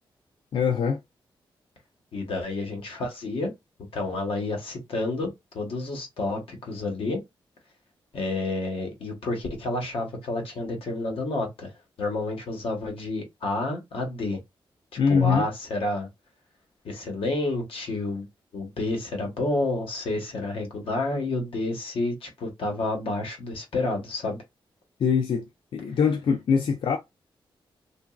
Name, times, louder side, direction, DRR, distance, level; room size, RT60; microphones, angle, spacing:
voice 1, 0.5-1.0 15.0-15.5 25.0-25.5 25.7-27.0, left 6 dB, 65° left, 0.4 m, -23 dB
voice 2, 2.1-3.5 3.9-7.2 8.1-11.7 12.0-14.4 15.1-16.1 16.8-18.3 18.5-24.4, left 2 dB, 85° left, 1.1 m, -29 dB
2.9 x 2.4 x 2.3 m
wide cardioid pair, 145°, 9 cm